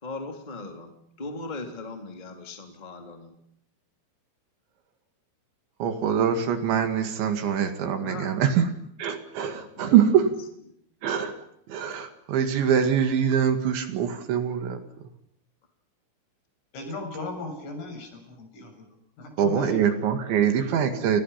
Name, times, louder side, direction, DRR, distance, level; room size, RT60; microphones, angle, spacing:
voice 1, 0.0-3.4 7.9-8.4 9.7-10.3, left 3 dB, 10° left, 4 dB, 2.6 m, -39 dB
voice 2, 5.8-8.7 9.0-10.3 11.0-11.4 11.7-14.8 19.4-21.2, right 8 dB, 65° right, 8 dB, 4.1 m, -23 dB
voice 3, 16.7-18.7 19.2-19.8, left 2 dB, 70° left, 4 dB, 9.7 m, -36 dB
29.5 x 29.5 x 5.9 m, 0.70 s
omnidirectional pair, 6.0 m